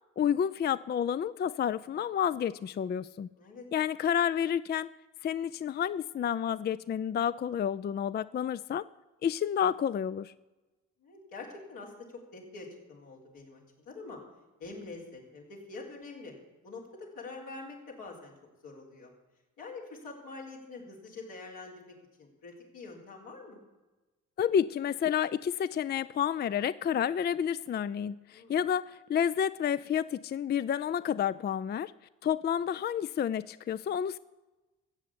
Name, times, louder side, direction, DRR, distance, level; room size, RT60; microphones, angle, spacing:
voice 1, 0.2-3.3 3.7-4.9 5.2-8.9 9.2-10.3 24.4-31.9 32.2-34.2, left 8 dB, 30° left, 17 dB, 0.4 m, -30 dB
voice 2, 3.3-3.6 11.0-14.2 14.6-16.3 16.6-18.3 18.6-19.1 19.6-23.6 28.3-28.6, left 3 dB, 80° left, -2 dB, 3.8 m, -45 dB
14.5 x 7.7 x 8.4 m, 1.1 s
supercardioid pair, 55°, 34 cm